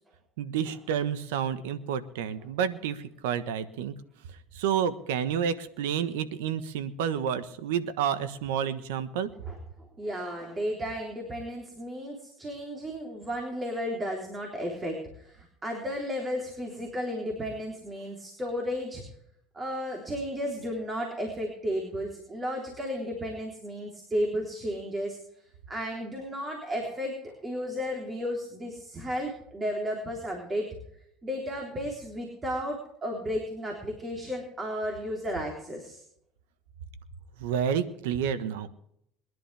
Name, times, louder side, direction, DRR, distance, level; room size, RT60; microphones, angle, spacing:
voice 1, 0.4-3.9 4.5-9.3 37.4-38.7, right 8 dB, 85° right, 12 dB, 1.3 m, -29 dB
voice 2, 10.0-19.0 19.5-25.2 25.7-30.7 31.2-36.0, equal, 25° right, 1 dB, 3.6 m, -33 dB
22.5 x 11.0 x 3.5 m, 0.72 s
supercardioid pair, 95°, 0 cm